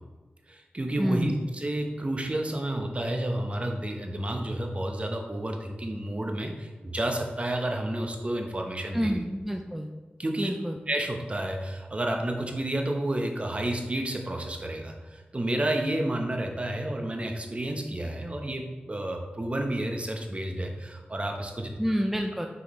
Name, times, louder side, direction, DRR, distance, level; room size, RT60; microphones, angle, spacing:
voice 1, 0.5-9.2 10.2-10.5 10.9-21.7, right 1 dB, 35° right, 3 dB, 1.0 m, -30 dB
voice 2, 1.0-1.4 8.9-9.9 10.4-10.8 21.8-22.5, equal, 5° right, 4 dB, 0.4 m, -28 dB
6.7 x 4.7 x 3.2 m, 1.3 s
cardioid pair, 45°, 4 cm